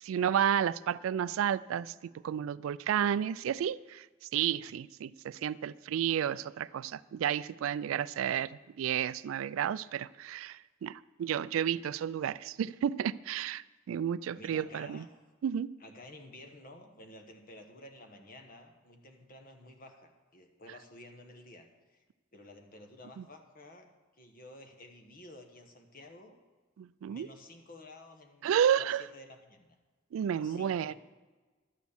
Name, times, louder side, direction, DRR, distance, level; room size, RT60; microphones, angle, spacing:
voice 1, 0.0-1.9 2.2-8.5 8.8-15.0 15.4-15.7 23.2-23.3 26.8-27.3 28.4-29.0 30.1-30.9, right 9 dB, 85° right, 18 dB, 0.3 m, -31 dB
voice 2, 14.4-15.1 15.8-22.0 22.3-23.9 24.2-26.4 27.1-29.7 30.3-30.9, left 1 dB, 45° left, 5 dB, 1.2 m, -52 dB
11.5 x 6.2 x 7.1 m, 1.3 s
head